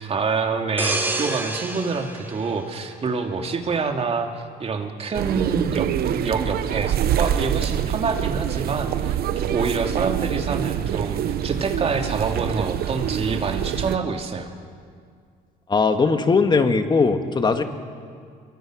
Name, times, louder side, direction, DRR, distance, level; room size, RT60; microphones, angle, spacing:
voice 1, 0.0-4.3 4.6-14.5, right 4 dB, 35° right, 4 dB, 2.7 m, -26 dB
sound 1, 0.8-3.5 3.9-4.1, right 2 dB, 10° right, 3.4 m, -29 dB
sound 2, 5.1-14.0, right 10 dB, 65° right, 0.9 m, -25 dB
voice 2, 15.7-17.6, left 4 dB, 25° left, 6 dB, 2.0 m, -19 dB
27.0 x 23.5 x 6.5 m, 2.1 s
cardioid pair, 110°, 17 cm